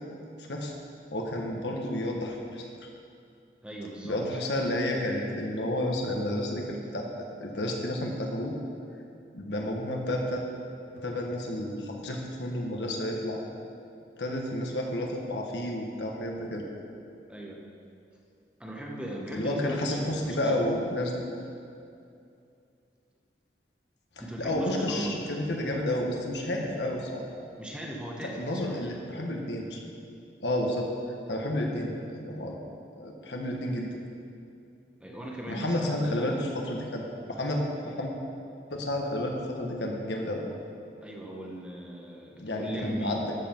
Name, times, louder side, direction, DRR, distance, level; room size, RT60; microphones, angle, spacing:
voice 1, 1.1-2.7 4.0-7.0 7.4-8.6 9.3-10.4 10.9-13.4 14.2-16.6 19.3-21.2 24.4-27.2 28.2-29.8 30.4-30.9 31.3-32.6 33.0-33.9 35.5-37.0 37.3-38.1 38.7-40.4 42.4-43.2, left 1 dB, 85° left, 0 dB, 1.4 m, -31 dB
voice 2, 3.6-4.4 17.3-17.7 18.6-20.6 24.2-25.3 27.6-28.8 35.0-36.5 41.0-43.2, right 1 dB, 5° right, -2 dB, 1.0 m, -38 dB
13.0 x 7.6 x 4.5 m, 2.5 s
head